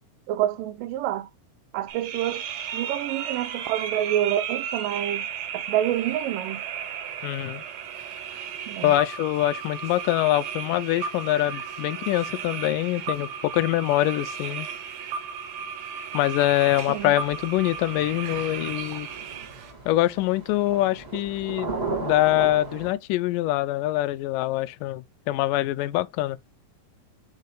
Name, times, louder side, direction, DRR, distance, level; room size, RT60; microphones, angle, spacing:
voice 1, 0.3-1.3 1.7-2.4 2.7-5.3 5.5-6.6 8.7-9.0 16.9-17.2, right 12 dB, 85° right, 2.4 m, -27 dB
sound 1, 1.9-19.7, right 7 dB, 65° right, 2.1 m, -34 dB
voice 2, 7.2-7.6 8.8-14.7 16.1-19.1 19.9-21.7 22.0-26.4, left 16 dB, 85° left, 2.2 m, -24 dB
sound 2, 16.7-22.9, right 3 dB, 20° right, 2.5 m, -36 dB
6.5 x 6.4 x 2.3 m
omnidirectional pair, 3.8 m